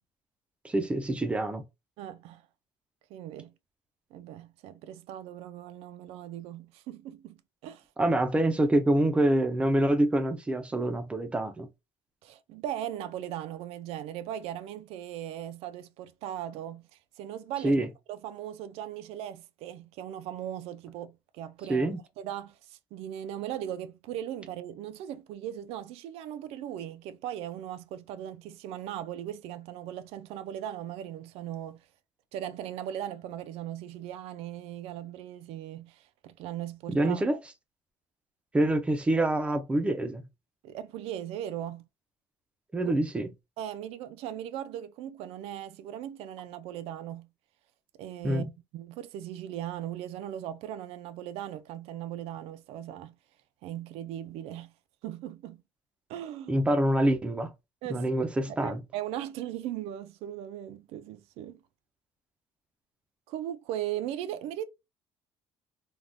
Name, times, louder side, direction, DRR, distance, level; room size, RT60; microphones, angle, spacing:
voice 1, 0.6-1.6 8.0-11.7 17.6-17.9 21.7-22.0 36.9-37.4 38.5-40.2 42.7-43.3 48.2-48.5 56.5-57.5 57.9-58.8, right 1 dB, 10° right, 0.3 m, -26 dB
voice 2, 2.0-2.4 3.1-3.5 4.1-7.4 7.6-7.8 12.2-17.8 18.1-21.9 22.2-31.9 32.3-37.2 40.6-41.9 42.8-42.9 43.6-47.3 48.0-48.5 48.7-53.1 53.6-54.7 55.0-55.6 56.1-56.6 57.8-58.1 58.5-61.6 63.3-64.6, right 11 dB, 85° right, 0.4 m, -38 dB
3.4 x 2.2 x 2.5 m
cardioid pair, 180°, 10 cm